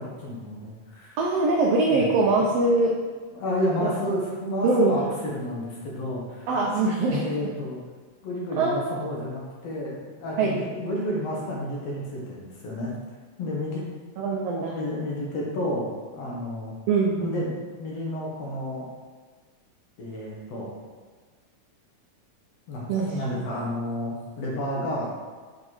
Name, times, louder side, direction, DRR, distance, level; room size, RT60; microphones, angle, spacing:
voice 1, 0.0-1.2 1.9-2.1 3.3-6.5 7.2-7.8 8.2-12.9 13.4-13.8 14.7-15.9 16.1-16.7 17.2-18.9 20.0-20.7 22.7-25.1, left 1 dB, 60° left, -3 dB, 2.0 m, -31 dB
voice 2, 1.2-3.0 3.8-3.9 4.6-4.9 6.5-7.3 8.6-8.8 10.4-10.6 14.2-14.8 16.9-17.5 22.9-23.2, right 3 dB, 90° right, -1 dB, 1.3 m, -22 dB
7.5 x 3.9 x 4.7 m, 1.4 s
omnidirectional pair, 3.7 m